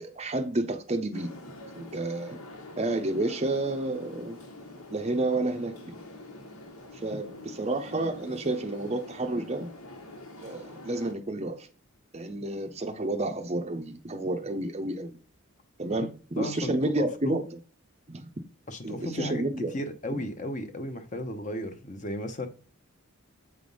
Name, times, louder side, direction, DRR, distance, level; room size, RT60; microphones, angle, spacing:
voice 1, 0.0-1.3 1.7-2.4 2.8-4.4 4.9-6.0 7.0-9.7 10.4-11.7 12.1-15.2 15.8-17.4 18.1-18.3 18.8-19.7, right 2 dB, 30° right, 0.6 m, -30 dB
sound 1, 1.1-11.1, left 2 dB, 80° left, 1.5 m, -45 dB
voice 2, 16.4-17.4 18.7-22.5, left 1 dB, 35° left, 0.8 m, -35 dB
8.1 x 3.4 x 5.3 m
head